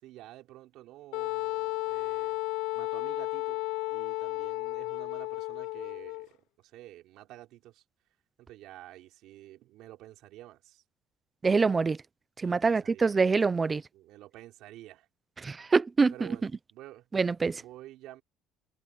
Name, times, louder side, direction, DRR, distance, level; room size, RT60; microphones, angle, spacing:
voice 1, 0.0-2.4 2.7-7.8 8.4-10.8 12.4-13.4 13.9-15.1 16.1-17.1 17.5-18.2, right 15 dB, 55° right, 4.2 m, -50 dB
Wind instrument woodwind instrument, 1.1-6.3, left 21 dB, 70° left, 0.6 m, -33 dB
voice 2, 11.4-12.0 12.4-13.8 15.4-16.1 17.1-17.6, right 4 dB, 15° right, 0.5 m, -25 dB
cardioid pair, 175°, 0 cm